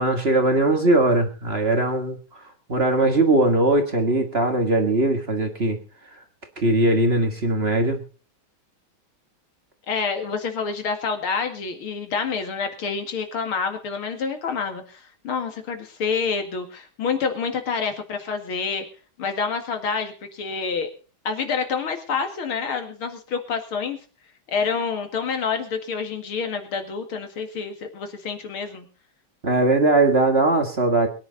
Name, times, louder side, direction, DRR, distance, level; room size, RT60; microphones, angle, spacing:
voice 1, 0.0-2.2 2.7-5.8 6.6-8.0 29.4-31.1, right 2 dB, 30° right, 5 dB, 1.8 m, -20 dB
voice 2, 9.9-18.9 19.2-20.9 21.2-24.0 24.5-28.9, left 5 dB, 85° left, 6 dB, 2.9 m, -28 dB
22.0 x 10.5 x 4.0 m, 0.36 s
omnidirectional pair, 2.3 m